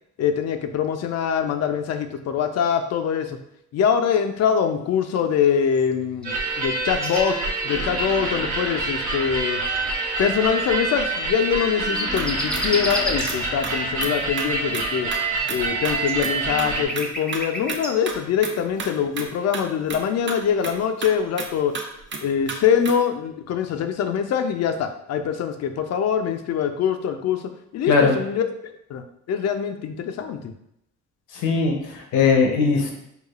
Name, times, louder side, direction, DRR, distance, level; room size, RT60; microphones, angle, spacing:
voice 1, 0.2-3.4 3.7-7.4 7.6-9.6 10.2-15.1 15.5-21.8 22.2-30.5, left 7 dB, 60° left, 8 dB, 0.5 m, -24 dB
sound 1, 5.7-6.3 6.6-7.3 7.7-7.9 8.8-9.1 11.5-13.3 14.8-17.9, equal, 5° left, 0.6 m, -32 dB
sound 2, 6.2-16.9, right 3 dB, 80° right, 1.0 m, -26 dB
sound 3, 12.1-14.9 15.1-15.2 15.5-15.6 15.8-15.9 16.2-16.3 16.6-16.7 17.0-17.4 17.7-18.2 18.4-18.5 18.8-18.9 19.1-19.3 19.5-19.6 19.9-20.0 20.3-20.4 20.6-20.7 21.0-21.1 21.4-21.5 21.7-21.8 22.1-22.2 22.5-22.6 22.9-23.0, right 4 dB, 40° right, 0.6 m, -32 dB
voice 2, 31.3-32.9, left 4 dB, 80° left, 1 dB, 0.8 m, -19 dB
4.8 x 2.3 x 2.4 m, 0.79 s
cardioid pair, 90°, 30 cm